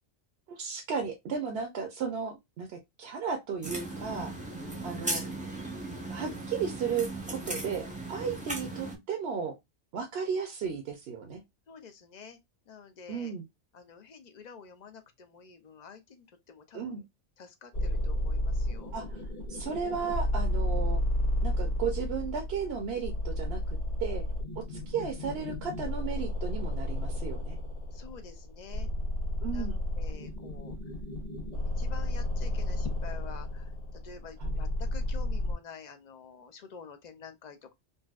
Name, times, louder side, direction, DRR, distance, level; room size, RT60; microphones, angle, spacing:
voice 1, 0.5-4.3 4.8-5.2 6.1-9.5 9.9-11.4 13.1-13.5 16.7-17.0 18.9-19.2 19.5-21.0 21.4-23.6 24.0-24.2 24.6-27.6 29.4-29.8 34.4-34.6, right 6 dB, 65° right, 0.8 m, -34 dB
sound 1, 3.6-9.0, right 2 dB, 10° right, 0.6 m, -37 dB
voice 2, 11.7-12.4 12.7-13.3 13.7-17.0 17.4-19.0 27.9-28.9 29.5-31.0 31.4-37.7, left 6 dB, 55° left, 0.5 m, -48 dB
sound 2, 17.7-35.5, left 1 dB, 40° left, 1.2 m, -32 dB
3.9 x 2.2 x 2.3 m
omnidirectional pair, 1.2 m